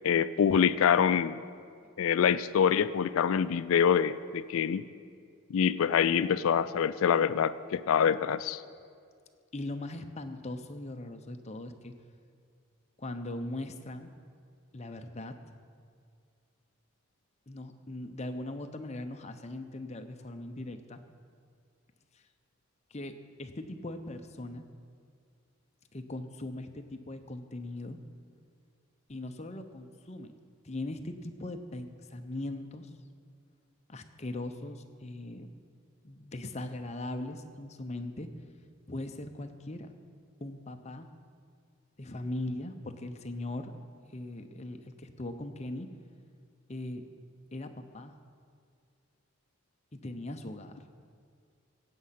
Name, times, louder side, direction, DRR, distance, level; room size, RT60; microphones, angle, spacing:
voice 1, 0.0-1.4 2.0-4.8 5.5-8.6, left 7 dB, 75° left, 15 dB, 0.3 m, -25 dB
voice 2, 9.5-11.9 13.0-14.1 14.7-15.4 17.5-21.0 22.1-22.2 22.9-23.1 23.4-24.6 25.9-28.0 29.1-30.3 30.6-32.9 33.9-35.5 36.0-38.3 38.9-39.9 40.4-41.1 42.0-43.7 44.1-45.9 46.7-47.0 47.5-48.1 49.9-50.8, left 2 dB, 30° left, 7 dB, 0.7 m, -39 dB
16.5 x 8.3 x 5.8 m, 2.2 s
head